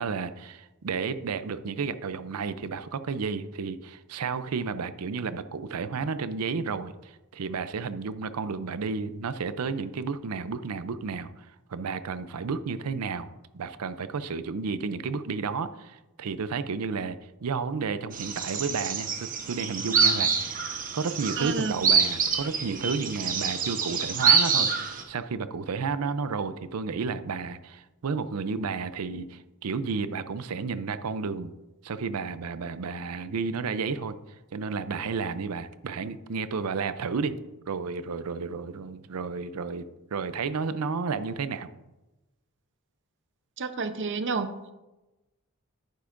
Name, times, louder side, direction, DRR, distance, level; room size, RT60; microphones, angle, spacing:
voice 1, 0.0-20.6 20.9-24.7 25.1-31.5 31.8-34.2 34.5-37.4 37.7-39.8 40.1-41.7, right 5 dB, 85° right, 13 dB, 0.5 m, -32 dB
sound 1, 18.1-25.0, right 6 dB, 40° right, 1.0 m, -26 dB
voice 2, 21.4-21.7 43.6-44.5, right 4 dB, 55° right, 9 dB, 0.7 m, -29 dB
10.5 x 9.5 x 2.5 m, 1.0 s
head